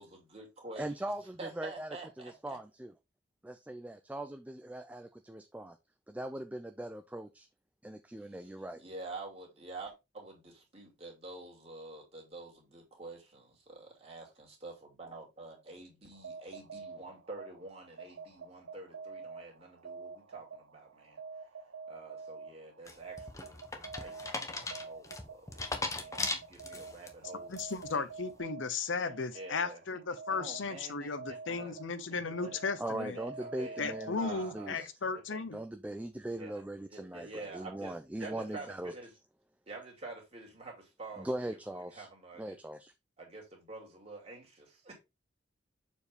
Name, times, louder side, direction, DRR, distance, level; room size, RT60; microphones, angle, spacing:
voice 1, 0.0-0.9 1.4-2.6 8.8-21.2 21.9-27.6 27.9-28.1 29.3-29.8 30.3-31.7 32.1-32.6 33.0-33.9 34.2-34.9 35.3-35.5 36.4-36.5 36.9-39.1 39.7-42.5 43.2-45.0, right 3 dB, 30° right, 2.5 m, -48 dB
voice 2, 0.8-2.9 3.4-5.8 6.1-7.5 7.8-8.8 32.8-34.9 35.5-38.9 41.2-42.1 42.4-42.9, right 1 dB, 10° right, 0.4 m, -40 dB
sound 1, 16.1-34.6, right 4 dB, 85° right, 0.7 m, -48 dB
sound 2, 22.9-27.1 27.5-28.0, left 3 dB, 15° left, 0.8 m, -38 dB
voice 3, 27.5-33.2 33.8-35.6, left 4 dB, 90° left, 0.8 m, -35 dB
7.0 x 4.6 x 3.4 m
head